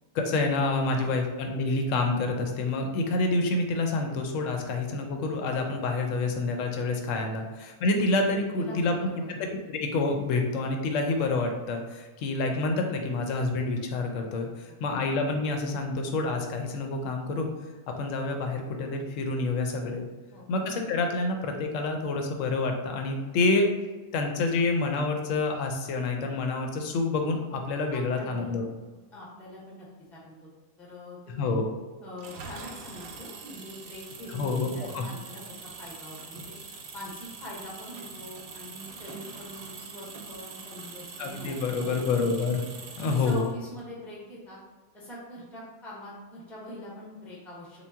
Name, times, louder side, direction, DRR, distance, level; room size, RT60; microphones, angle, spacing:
voice 1, 0.1-8.9 9.3-9.4 9.7-17.5 17.9-20.1 20.5-23.7 24.1-28.6 31.3-31.7 34.3-35.1 41.2-42.6 43.0-43.5, left 3 dB, 70° left, 3 dB, 0.8 m, -28 dB
voice 2, 8.6-9.3 14.4-14.9 20.3-20.5 27.9-28.5 29.1-30.5 30.8-31.6 32.0-36.6 36.9-42.5 43.1-44.6 44.9-47.9, left 1 dB, ahead, -5 dB, 0.4 m, -44 dB
Engine, 32.2-43.8, right 4 dB, 75° right, 1.0 m, -44 dB
3.8 x 2.1 x 3.4 m, 1.3 s
omnidirectional pair, 1.6 m